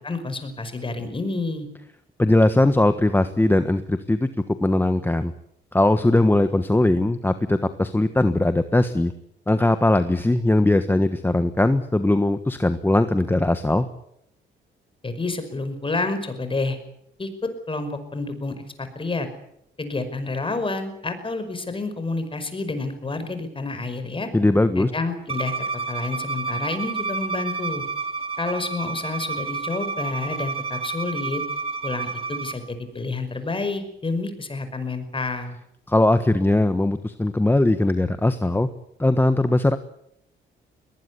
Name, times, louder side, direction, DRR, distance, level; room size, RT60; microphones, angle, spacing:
voice 1, 0.0-1.7 15.0-16.8 17.2-19.3 19.8-24.3 24.8-25.5 25.9-27.8 28.4-31.4 31.8-35.6, left 3 dB, 25° left, 10 dB, 5.4 m, -29 dB
voice 2, 2.2-4.3 4.6-5.3 5.7-9.1 9.5-13.9 24.3-24.9 35.9-38.7 39.0-39.8, left 2 dB, 10° left, 10 dB, 1.3 m, -20 dB
Bowed string instrument, 25.3-32.6, right 4 dB, 30° right, 2.5 m, -30 dB
22.0 x 19.5 x 8.4 m, 0.77 s
cardioid pair, 90°, 20 cm